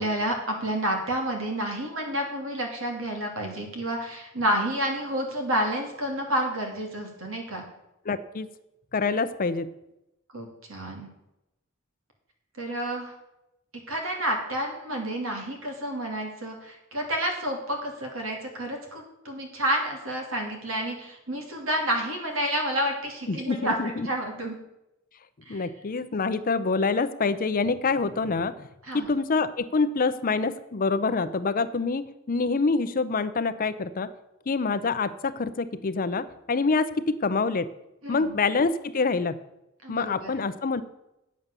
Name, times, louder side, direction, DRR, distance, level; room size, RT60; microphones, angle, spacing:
voice 1, 0.0-7.6 10.3-11.1 12.6-13.1 13.9-23.8 24.0-24.5 25.5-25.7 28.8-29.1 38.0-38.4 39.8-40.4, right 1 dB, 80° right, 2 dB, 2.7 m, -30 dB
voice 2, 8.1-8.5 8.9-9.7 23.3-24.1 25.5-28.7 28.9-34.1 34.5-37.7 38.1-39.4 39.9-40.8, left 4 dB, 45° left, 13 dB, 0.6 m, -26 dB
9.3 x 7.4 x 6.8 m, 0.90 s
head